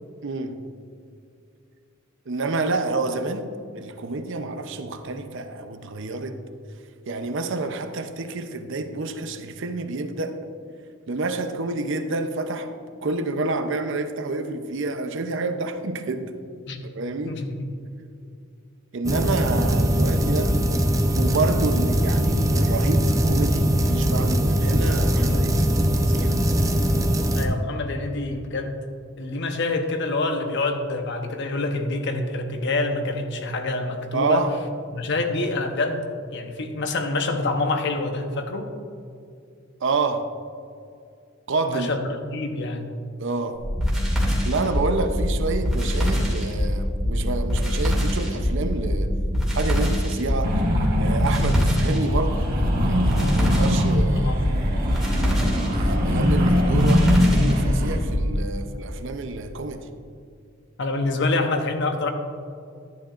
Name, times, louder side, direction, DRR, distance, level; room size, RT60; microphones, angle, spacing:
voice 1, 0.2-0.6 2.3-6.4 7.1-10.4 11.1-16.3 16.8-17.3 18.9-20.6 21.1-26.4 34.1-34.5 39.8-40.3 41.5-41.9 43.2-43.6 44.4-49.1 49.5-50.5 51.0-52.5 52.8-54.4 55.6-59.9, right 3 dB, 65° right, 0.6 m, -28 dB
voice 2, 17.2-17.7 19.2-19.3 27.3-28.9 29.2-34.4 34.9-38.7 41.6-42.9 54.1-54.4 60.8-62.1, left 2 dB, 60° left, 0.9 m, -27 dB
sound 1, 19.0-27.5, right 1 dB, 15° right, 0.6 m, -21 dB
sound 2, 43.6-58.3, equal, ahead, 2.3 m, -23 dB
sound 3, 50.4-58.0, equal, 45° right, 1.4 m, -22 dB
11.5 x 10.0 x 2.5 m
head